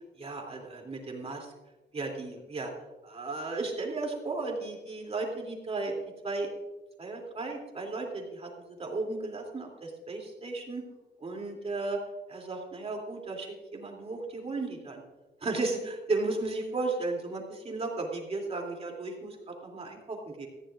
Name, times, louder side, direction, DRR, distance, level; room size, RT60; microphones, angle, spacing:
voice 1, 0.2-1.5 1.9-2.7 3.0-6.0 6.2-6.5 7.0-10.8 11.2-12.0 12.3-15.0 15.4-20.5, right 3 dB, 30° right, 1 dB, 2.9 m, -35 dB
18.5 x 15.0 x 2.5 m, 1.1 s
cardioid pair, 135°, 19 cm